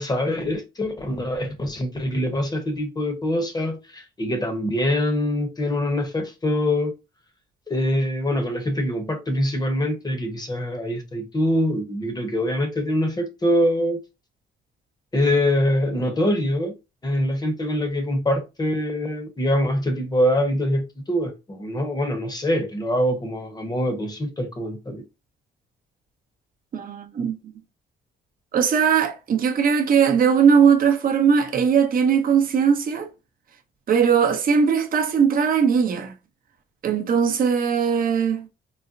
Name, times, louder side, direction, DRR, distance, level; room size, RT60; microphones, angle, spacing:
voice 1, 0.0-6.9 7.7-14.0 15.1-16.7 17.0-25.0, left 1 dB, 20° left, 0.8 m, -24 dB
voice 2, 26.7-27.4 28.5-33.1 33.9-36.1 36.8-38.5, right 6 dB, 45° right, 0.6 m, -19 dB
3.9 x 2.0 x 2.5 m
cardioid pair, 90°, 20 cm